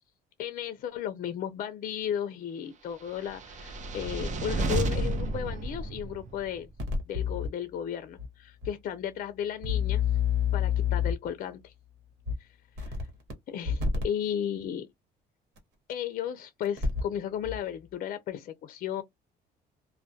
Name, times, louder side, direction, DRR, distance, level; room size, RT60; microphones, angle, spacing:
voice 1, 0.4-6.7 7.1-10.0 10.5-11.7 12.4-12.5 13.5-14.9 15.9-19.0, left 9 dB, 55° left, 0.5 m, -34 dB
sound 1, 3.2-6.6, right 2 dB, 45° right, 0.6 m, -31 dB
sound 2, 6.8-7.5 8.2-8.3 8.6-8.7 9.6-11.3 12.3-12.4 12.8-13.3 13.6-14.0 15.6-15.7 16.6-17.1 17.4-17.6, left 7 dB, 80° right, 1.2 m, -28 dB
2.2 x 2.2 x 2.6 m
cardioid pair, 110°, 17 cm